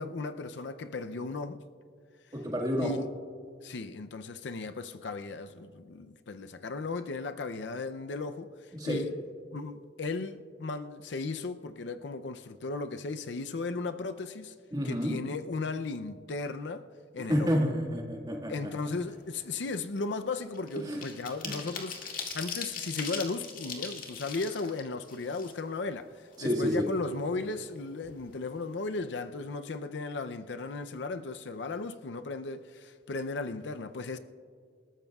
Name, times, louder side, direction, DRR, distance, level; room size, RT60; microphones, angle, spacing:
voice 1, 0.0-1.6 2.8-3.1 3.6-9.1 9.5-14.5 14.8-16.9 17.1-17.5 18.5-22.0 22.3-34.2, left 3 dB, 70° left, 0.5 m, -36 dB
voice 2, 2.3-2.9 8.7-9.0 14.7-15.2 17.3-18.5 20.9-21.0 21.4-21.5 26.4-26.9, equal, 20° right, 1.7 m, -29 dB
sound 1, 18.9-19.2 19.5-26.0 26.3-26.4 26.7-27.7 28.0-28.2 28.5-28.8, left 5 dB, 50° left, 1.9 m, -40 dB
28.0 x 13.5 x 2.4 m
head